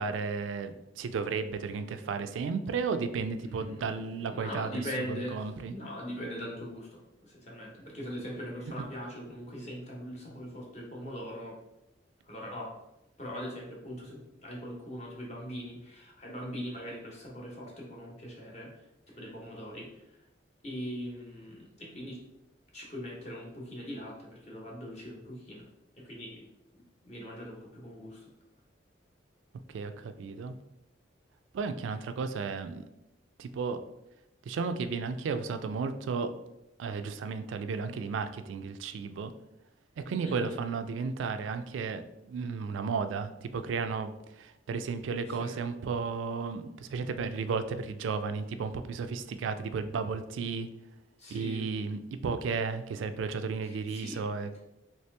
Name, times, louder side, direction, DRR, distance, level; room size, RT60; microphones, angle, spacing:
voice 1, 0.0-4.8 5.3-5.7 29.7-30.6 31.5-32.8 33.4-33.8 34.5-36.3 36.8-39.3 40.1-50.7 51.3-54.6, right 5 dB, 85° right, 10 dB, 0.3 m, -33 dB
voice 2, 3.3-11.6 12.2-12.7 13.2-18.9 19.2-20.3 20.6-22.2 22.7-25.7 25.9-26.5 26.7-28.3 40.2-40.6 45.3-45.6 51.2-51.7 53.6-54.2, equal, 35° left, -3 dB, 0.9 m, -41 dB
3.2 x 2.8 x 3.2 m, 0.89 s
head